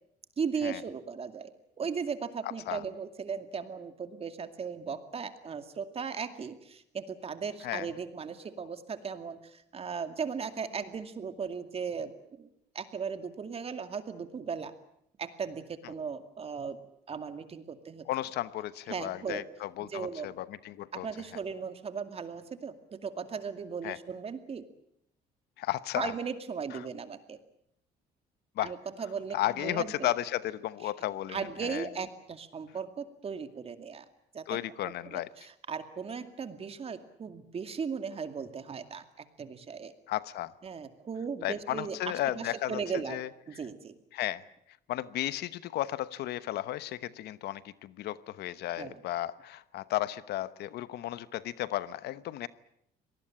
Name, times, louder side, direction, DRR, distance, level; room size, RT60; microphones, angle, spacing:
voice 1, 0.4-12.5 12.7-14.7 15.2-16.8 17.1-18.0 18.9-19.4 19.8-20.3 20.9-24.6 26.0-27.4 28.6-30.1 31.3-34.1 34.3-34.6 35.1-39.9 40.6-43.2 43.5-44.0 48.8-49.0, right 6 dB, 35° right, 9 dB, 2.3 m, -37 dB
voice 2, 18.1-21.1 23.8-24.0 25.6-26.1 26.7-26.8 28.6-28.7 29.3-31.9 34.5-35.3 40.1-40.5 41.4-42.8 43.1-43.3 44.1-44.4 44.9-52.5, left 14 dB, 75° left, 16 dB, 1.0 m, -34 dB
25.0 x 19.0 x 8.9 m, 0.74 s
cardioid pair, 110°, 17 cm